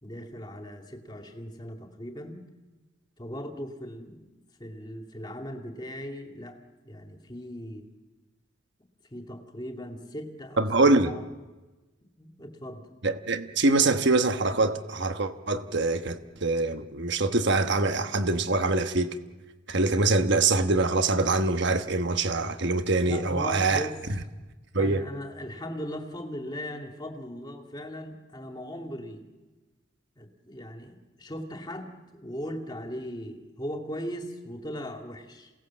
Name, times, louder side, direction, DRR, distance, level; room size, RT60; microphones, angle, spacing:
voice 1, 0.0-2.4 3.2-4.3 4.6-6.6 6.8-7.9 9.1-10.7 11.1-11.2 12.2-12.9 23.1-24.0 24.8-29.2 30.2-35.5, equal, 20° left, 4 dB, 2.2 m, -38 dB
voice 2, 10.6-11.1 13.0-19.1 19.7-23.9 24.7-25.0, right 3 dB, 60° right, 8 dB, 1.2 m, -24 dB
28.0 x 18.0 x 7.5 m, 1.2 s
head